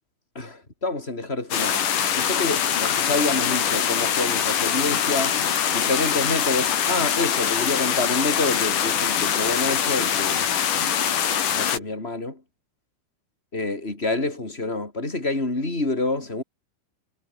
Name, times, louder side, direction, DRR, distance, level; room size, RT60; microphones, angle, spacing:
voice 1, 0.3-1.8 2.2-5.4 5.7-10.5 11.5-12.4 13.5-16.4, left 2 dB, 10° left, 5.6 m, -27 dB
sound 1, 1.5-11.8, left 8 dB, 45° left, 3.3 m, -23 dB
omnidirectional pair, 6.0 m